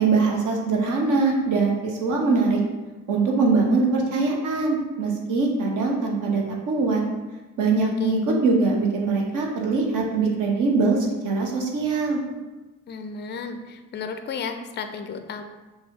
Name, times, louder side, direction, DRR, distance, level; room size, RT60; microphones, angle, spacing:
voice 1, 0.0-2.6 3.1-7.0 7.6-12.2, right 3 dB, 50° right, 0 dB, 1.0 m, -22 dB
voice 2, 7.8-8.1 12.9-15.4, left 5 dB, 25° left, 7 dB, 0.4 m, -33 dB
5.8 x 2.3 x 3.4 m, 1.1 s
figure-of-eight pair, 45°, 42 cm